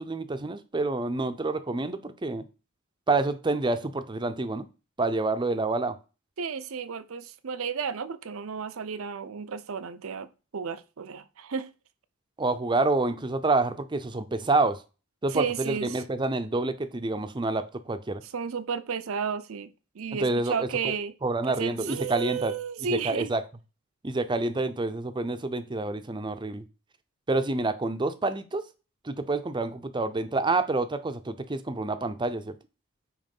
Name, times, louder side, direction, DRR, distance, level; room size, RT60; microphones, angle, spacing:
voice 1, 0.0-2.4 3.1-4.6 5.0-5.9 12.4-14.8 15.2-18.2 20.2-20.9 21.2-22.5 22.9-23.4 24.0-26.6 27.3-28.6 29.0-32.5, right 2 dB, 20° right, 0.6 m, -28 dB
voice 2, 6.4-11.7 15.3-16.0 18.2-21.1 21.4-23.3, right 6 dB, 70° right, 0.6 m, -33 dB
8.9 x 3.1 x 5.3 m
head